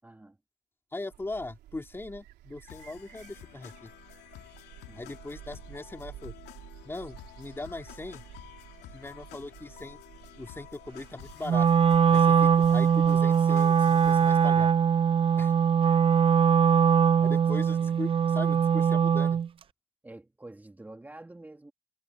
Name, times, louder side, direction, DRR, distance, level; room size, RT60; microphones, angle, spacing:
voice 1, 0.0-0.4 4.9-5.1 17.5-18.0 20.0-21.7, right 2 dB, 10° right, 2.3 m, -48 dB
voice 2, 0.9-3.9 5.0-6.3 6.8-8.2 8.9-10.0 10.4-11.7 12.1-14.7 15.4-15.5 17.2-19.4, left 2 dB, 15° left, 3.0 m, -39 dB
atmosphere - village evening, 1.1-13.2, right 13 dB, 75° right, 3.9 m, -51 dB
sound 1, 2.7-14.5, left 16 dB, 85° left, 2.5 m, -51 dB
Wind instrument woodwind instrument, 11.5-19.5, right 7 dB, 35° right, 0.4 m, -22 dB
cardioid pair, 110°, 17 cm